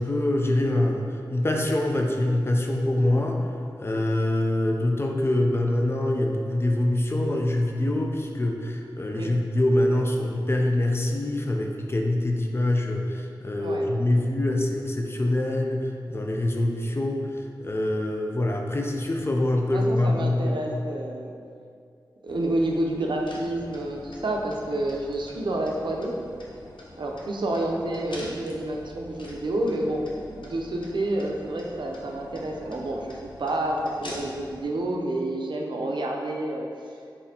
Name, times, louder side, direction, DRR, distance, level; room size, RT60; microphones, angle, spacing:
voice 1, 0.0-3.4 3.8-17.2 17.6-20.6, left 1 dB, 30° left, 1 dB, 0.4 m, -24 dB
voice 2, 19.7-21.3 22.2-26.1 27.0-36.7, right 1 dB, 70° right, 0 dB, 0.5 m, -29 dB
sound 1, 22.3-34.6, left 1 dB, 80° left, 0.6 m, -45 dB
4.0 x 3.5 x 2.7 m, 2.3 s
wide cardioid pair, 90°, 8 cm